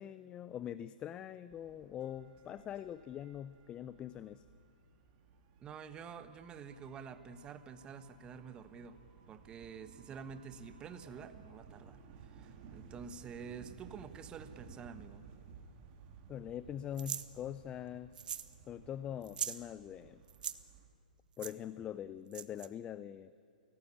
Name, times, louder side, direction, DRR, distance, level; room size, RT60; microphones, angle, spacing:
voice 1, 0.0-4.4 16.3-18.2 18.7-20.2 21.4-23.3, left 10 dB, 20° left, 15 dB, 0.5 m, -43 dB
sound 1, 1.5-20.9, right 6 dB, 35° right, 2.5 m, -57 dB
voice 2, 5.6-9.0 9.3-12.0 12.3-15.3, right 6 dB, 20° right, 11 dB, 1.2 m, -48 dB
sound 2, 17.0-17.3 18.1-18.5 18.8-18.9 19.2-19.6 20.3-20.6 21.4-21.5 22.3-22.7, right 9 dB, 70° right, 1.1 m, -40 dB
24.5 x 17.5 x 8.6 m, 2.6 s
hypercardioid pair, 135°, 5 cm